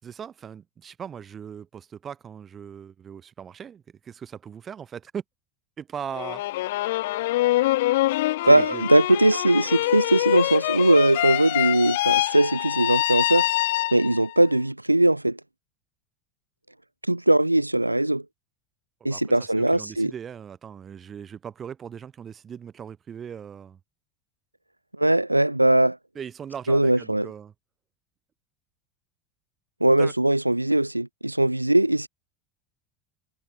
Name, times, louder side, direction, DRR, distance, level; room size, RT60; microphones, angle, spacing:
voice 1, 0.0-5.2 5.8-6.4 8.4-8.8 19.0-23.8 26.1-27.5 30.0-30.1, right 8 dB, 30° right, 5.0 m, -39 dB
sound 1, 6.1-14.3, left 17 dB, 60° left, 1.4 m, -25 dB
voice 2, 8.5-13.5 13.9-15.4 17.1-18.2 19.0-20.1 25.0-26.0 26.7-27.3 29.8-32.1, right 1 dB, 90° right, 0.7 m, -20 dB
figure-of-eight pair, 80°, 0 cm